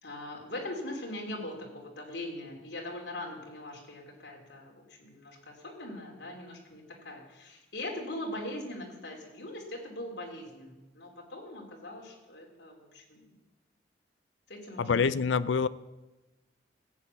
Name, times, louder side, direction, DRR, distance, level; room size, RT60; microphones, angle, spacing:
voice 1, 0.0-13.4 14.5-15.2, left 1 dB, 70° left, 0 dB, 3.2 m, -41 dB
voice 2, 14.8-15.7, left 5 dB, 90° left, 17 dB, 0.5 m, -26 dB
14.0 x 8.8 x 7.0 m, 1.1 s
head